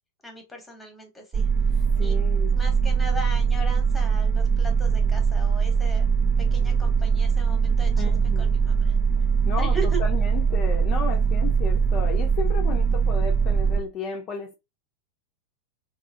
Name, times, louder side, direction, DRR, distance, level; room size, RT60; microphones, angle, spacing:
voice 1, 0.2-1.5 2.0-2.2 2.5-6.1 6.4-8.9 9.6-10.0, right 1 dB, 10° left, 1.0 m, -38 dB
sound 1, 1.3-13.8, right 6 dB, 35° right, 0.5 m, -22 dB
voice 2, 2.0-2.6 8.0-8.6 9.2-14.5, left 5 dB, 35° left, 0.5 m, -34 dB
2.7 x 2.4 x 2.6 m
figure-of-eight pair, 90°, 0 cm